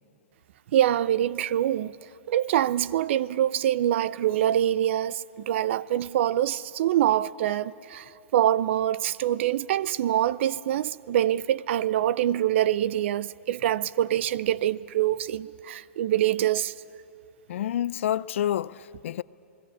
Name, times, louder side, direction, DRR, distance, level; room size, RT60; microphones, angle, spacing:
voice 1, 0.7-1.9 2.3-16.7, right 12 dB, 60° right, 0.6 m, -25 dB
voice 2, 17.5-19.2, left 11 dB, 70° left, 0.5 m, -28 dB
28.0 x 20.0 x 8.7 m
hypercardioid pair, 135°, 7 cm